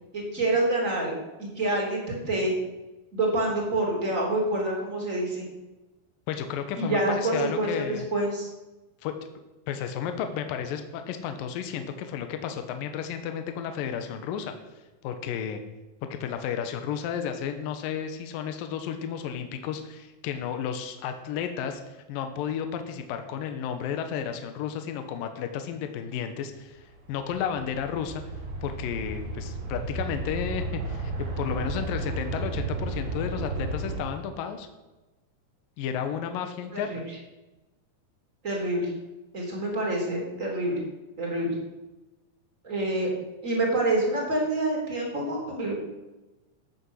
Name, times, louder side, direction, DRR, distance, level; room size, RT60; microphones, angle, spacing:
voice 1, 0.1-1.1 1.4-2.5 3.1-5.5 6.8-8.5 36.7-37.2 38.4-38.9 39.3-40.8 41.2-41.6 42.6-43.1 43.4-45.8, right 2 dB, 20° right, -1 dB, 2.9 m, -27 dB
voice 2, 6.3-8.1 9.0-9.1 9.7-14.5 15.0-15.6 16.0-28.2 28.6-34.7 35.8-37.0, left 8 dB, 75° left, 7 dB, 2.4 m, -32 dB
sound 1, 26.7-34.0, right 2 dB, 55° right, 3.0 m, -33 dB
14.0 x 8.5 x 6.3 m, 1.1 s
omnidirectional pair, 4.6 m